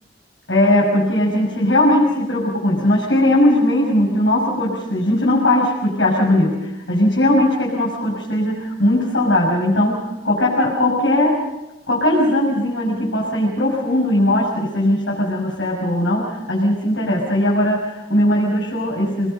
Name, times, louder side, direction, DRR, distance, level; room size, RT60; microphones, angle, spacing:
voice 1, 0.5-11.4 11.9-19.3, left 1 dB, 80° left, -5 dB, 6.5 m, -18 dB
28.0 x 21.5 x 5.5 m, 0.96 s
head